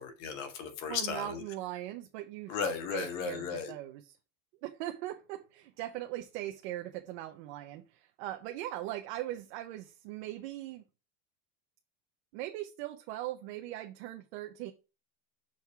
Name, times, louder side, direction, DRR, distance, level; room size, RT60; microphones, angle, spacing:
voice 1, 0.0-1.4 2.5-3.7, left 6 dB, 80° left, 1.8 m, -35 dB
voice 2, 0.9-2.6 2.9-4.2 4.6-10.8 12.3-14.7, right 14 dB, 60° right, 0.8 m, -40 dB
6.3 x 3.5 x 5.6 m
cardioid pair, 175°, 38 cm